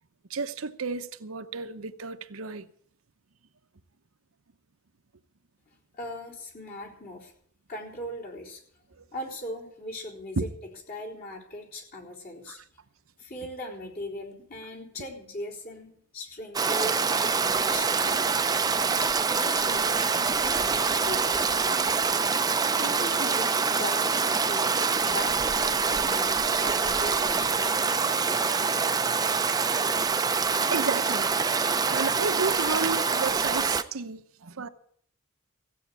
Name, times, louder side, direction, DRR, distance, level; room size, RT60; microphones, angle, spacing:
voice 1, 0.3-2.7 9.0-9.1 10.4-10.5 12.5-12.6 30.7-31.3 31.9-34.7, right 4 dB, 85° right, 0.9 m, -32 dB
voice 2, 6.0-7.3 7.7-8.6 9.1-10.5 10.9-12.6 13.2-18.5 19.3-22.1 22.8-27.8, left 1 dB, 45° left, 4.0 m, -39 dB
Stream, 16.5-33.8, right 5 dB, 20° right, 0.6 m, -25 dB
15.5 x 8.6 x 8.3 m
head